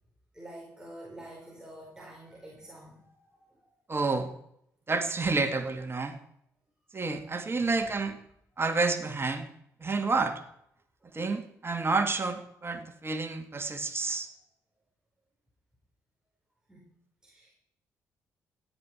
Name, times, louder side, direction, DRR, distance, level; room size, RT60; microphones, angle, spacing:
voice 1, 0.3-3.6 7.6-8.0 11.0-11.1 16.7-16.9 17.2-17.5, right 1 dB, 10° right, -3 dB, 4.6 m, -48 dB
voice 2, 3.9-4.3 4.9-6.2 6.9-8.2 8.6-9.5 9.8-10.4 11.1-14.3, right 3 dB, 30° right, 6 dB, 2.0 m, -29 dB
16.0 x 9.0 x 4.5 m, 0.73 s
hypercardioid pair, 45°, 8 cm